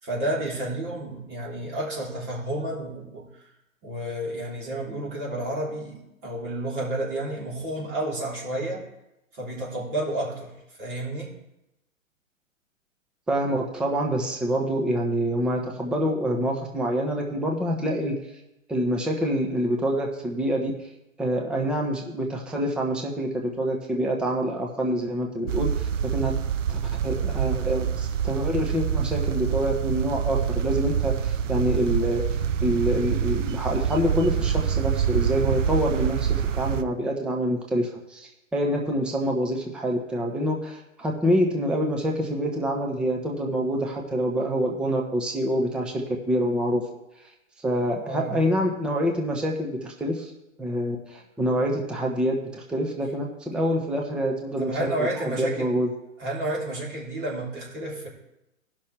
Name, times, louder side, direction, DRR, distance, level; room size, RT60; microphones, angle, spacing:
voice 1, 0.0-3.3 3.8-8.8 9.3-11.4 48.0-48.4 54.6-55.7 56.2-58.1, right 1 dB, 35° right, -4 dB, 3.3 m, -31 dB
voice 2, 13.3-18.2 18.7-20.7 21.2-26.3 26.7-32.2 32.6-46.8 47.6-50.3 50.6-55.9, equal, ahead, 0 dB, 0.6 m, -26 dB
sound 1, 25.5-36.8, right 8 dB, 65° right, 0.7 m, -26 dB
17.0 x 5.9 x 3.3 m, 0.90 s
hypercardioid pair, 125°, 40 cm